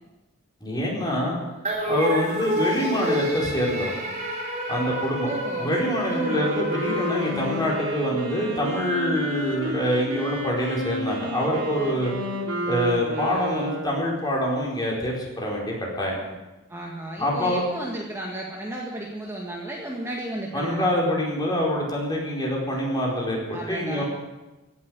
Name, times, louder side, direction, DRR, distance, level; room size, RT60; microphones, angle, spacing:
voice 1, 0.6-1.4 1.9-3.9 4.7-5.3 5.6-12.1 12.6-16.2 17.2-17.6 20.5-24.0, equal, 20° left, -3 dB, 4.5 m, -25 dB
sound 1, 1.6-8.2, equal, 30° right, 3.6 m, -29 dB
voice 2, 5.2-5.7 6.1-6.5 16.7-21.0 23.5-24.0, right 1 dB, 10° right, -2 dB, 1.8 m, -33 dB
Wind instrument woodwind instrument, 6.2-14.0, equal, 75° right, 3.4 m, -31 dB
16.5 x 8.6 x 9.3 m, 1.1 s
head